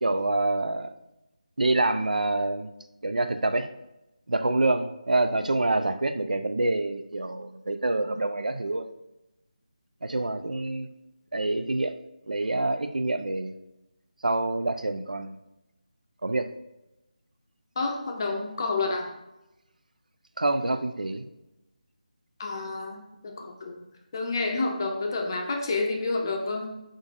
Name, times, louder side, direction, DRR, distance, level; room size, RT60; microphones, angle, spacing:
voice 1, 0.0-0.9 1.6-2.7 3.0-3.7 4.3-8.9 10.0-10.9 11.3-12.0 12.3-13.5 14.2-15.4 16.2-16.5 20.4-21.3, right 2 dB, 85° right, 8 dB, 0.4 m, -26 dB
voice 2, 17.8-19.1 22.4-23.8 24.1-26.7, left 3 dB, 30° left, 2 dB, 0.5 m, -29 dB
3.8 x 3.8 x 2.4 m, 0.93 s
figure-of-eight pair, 165°, 4 cm